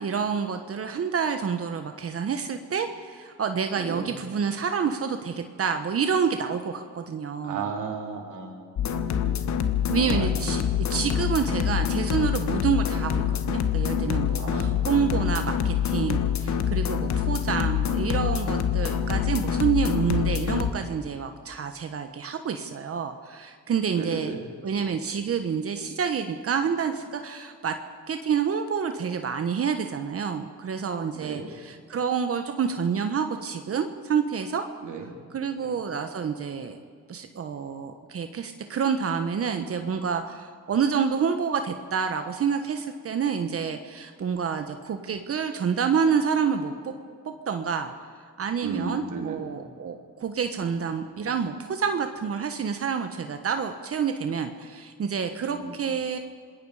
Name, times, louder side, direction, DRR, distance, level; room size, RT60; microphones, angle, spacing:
voice 1, 0.0-7.6 9.9-10.6 10.9-24.3 24.6-27.7 28.1-34.6 35.3-36.8 37.1-46.9 47.5-47.9 48.4-56.2, right 6 dB, 50° right, 6 dB, 1.4 m, -28 dB
voice 2, 3.8-4.1 7.4-9.6 10.0-10.4 14.4-14.9 23.9-24.5 31.1-31.5 34.8-35.1 35.6-35.8 48.6-49.6 55.5-55.7, right 5 dB, 80° right, 2 dB, 3.6 m, -35 dB
sound 1, 8.8-20.7, left 8 dB, 65° left, 1.5 m, -26 dB
26.5 x 20.5 x 5.0 m, 2.2 s
cardioid pair, 90°, 30 cm